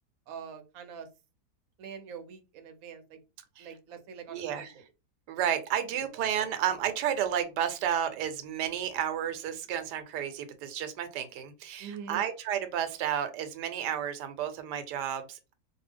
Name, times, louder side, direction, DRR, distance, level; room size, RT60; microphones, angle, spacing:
voice 1, 0.3-1.1 1.8-3.2 3.6-4.8 11.8-12.3, right 7 dB, 70° right, 7 dB, 0.9 m, -44 dB
voice 2, 4.3-4.7 5.3-15.5, right 9 dB, 85° right, 9 dB, 1.2 m, -32 dB
2.6 x 2.3 x 3.3 m, 0.29 s
omnidirectional pair, 1.7 m